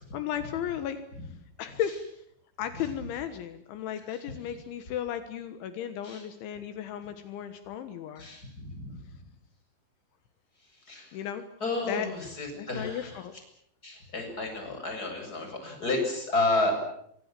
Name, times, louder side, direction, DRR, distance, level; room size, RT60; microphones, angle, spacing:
voice 1, 0.1-1.0 1.6-2.0 2.6-8.3 11.1-11.5 11.9-12.1 12.5-13.3, left 10 dB, 80° left, 9 dB, 3.7 m, -35 dB
voice 2, 8.2-9.0 10.6-11.2 11.6-13.2 13.8-16.7, left 2 dB, 20° left, 4 dB, 7.7 m, -31 dB
27.5 x 24.5 x 7.6 m, 0.73 s
omnidirectional pair, 5.5 m